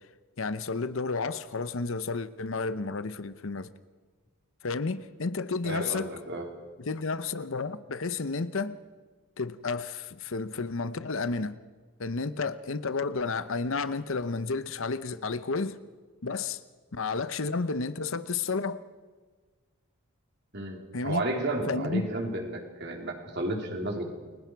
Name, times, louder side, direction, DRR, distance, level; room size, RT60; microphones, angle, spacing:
voice 1, 0.4-3.7 4.6-6.1 6.8-8.8 9.4-11.6 12.0-15.8 16.2-16.6 16.9-18.8 20.9-21.2 21.7-22.1, left 4 dB, 60° left, 0.8 m, -31 dB
voice 2, 5.6-6.5 20.5-24.1, right 2 dB, 50° right, 3.5 m, -32 dB
30.0 x 22.5 x 4.6 m
head